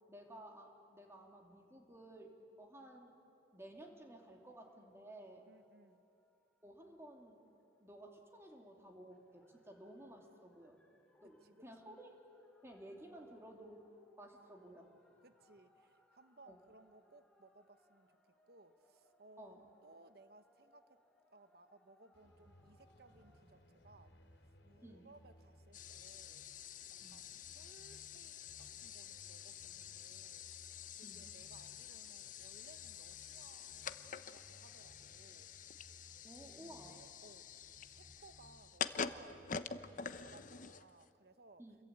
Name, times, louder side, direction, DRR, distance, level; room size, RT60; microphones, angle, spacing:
voice 1, 0.1-3.1 3.5-5.5 6.6-7.4 7.8-10.8 11.2-12.1 12.6-13.9 14.2-14.9 16.5-16.6 19.4-19.6 24.8-25.1 27.0-27.2 31.0-31.3 36.2-37.0 41.6-41.8, right 1 dB, 15° right, 1 dB, 2.7 m, -55 dB
sound 1, 3.7-23.4, left 1 dB, 5° left, 2.6 m, -74 dB
voice 2, 5.5-6.0 11.2-11.9 15.2-18.2 18.5-19.5 19.8-21.0 21.3-24.1 24.6-26.5 26.9-30.5 30.9-35.5 36.6-41.6, right 2 dB, 60° right, 11 dB, 1.2 m, -63 dB
sound 2, 22.1-40.7, equal, 75° left, 3.4 m, -64 dB
sound 3, 25.7-41.1, left 6 dB, 45° left, 0.9 m, -47 dB
29.5 x 22.5 x 8.8 m, 2.6 s
head